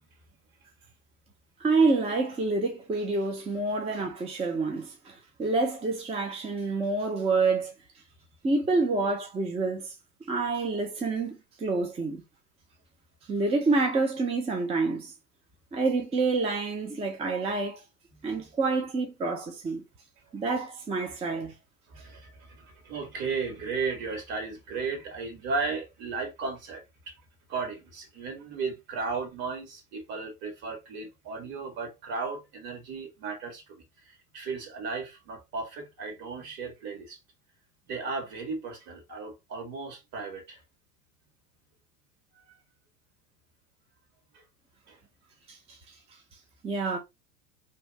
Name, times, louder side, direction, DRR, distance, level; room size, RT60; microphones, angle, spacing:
voice 1, 1.6-7.7 8.4-9.9 10.3-12.2 13.3-15.1 15.7-17.8 18.2-19.8 20.3-21.5 45.5-45.8 46.6-47.0, right 3 dB, 15° right, 0.5 m, -28 dB
voice 2, 21.9-27.2 27.5-37.2 37.9-40.6 42.3-42.6 44.3-44.4 44.9-45.0, right 4 dB, 50° right, 1.6 m, -35 dB
2.8 x 2.6 x 3.2 m
hypercardioid pair, 90°, 46 cm